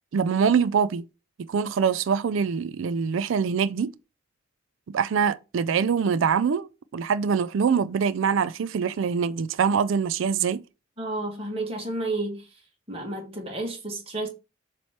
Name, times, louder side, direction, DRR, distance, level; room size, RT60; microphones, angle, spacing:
voice 1, 0.1-1.0 1.5-3.9 4.9-10.6, right 6 dB, 75° right, 0.4 m, -24 dB
voice 2, 11.0-12.5 12.9-14.3, right 2 dB, 30° right, 1.6 m, -31 dB
7.1 x 3.1 x 4.4 m
head